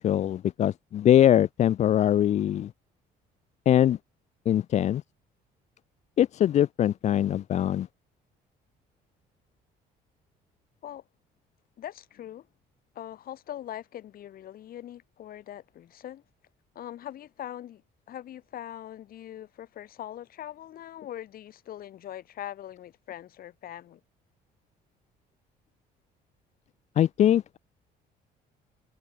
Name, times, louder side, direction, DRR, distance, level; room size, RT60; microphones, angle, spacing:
voice 1, 0.0-2.7 3.7-4.0 4.5-5.0 6.2-7.9 27.0-27.6, left 11 dB, 45° left, 0.4 m, -22 dB
voice 2, 11.8-12.5 12.9-16.2 16.7-17.8 18.1-24.0, left 11 dB, 60° left, 3.4 m, -41 dB
cardioid pair, 110°, 17 cm